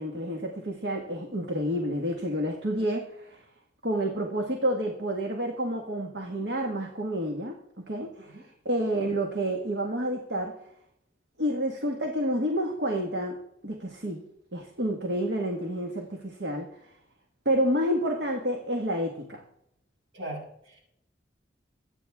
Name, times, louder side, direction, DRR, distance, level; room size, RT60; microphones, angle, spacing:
voice 1, 0.0-3.4 3.8-10.6 11.4-14.2 14.5-16.7 17.4-19.4, equal, 65° right, 1.7 m, -29 dB
voice 2, 20.1-20.8, right 1 dB, 85° right, 6.7 m, -39 dB
23.5 x 9.3 x 3.6 m
head